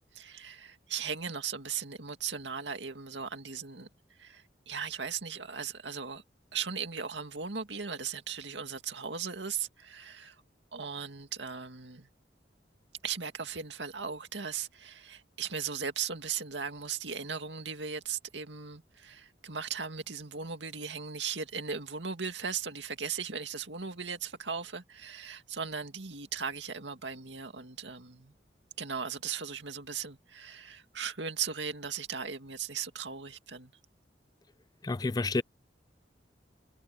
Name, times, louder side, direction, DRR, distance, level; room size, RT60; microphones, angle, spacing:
voice 1, 0.1-3.9 4.2-6.2 6.5-10.4 10.7-12.1 13.0-28.3 28.8-33.7, right 6 dB, 80° right, 2.2 m, -37 dB
voice 2, 34.8-35.4, left 3 dB, 20° left, 0.4 m, -29 dB
head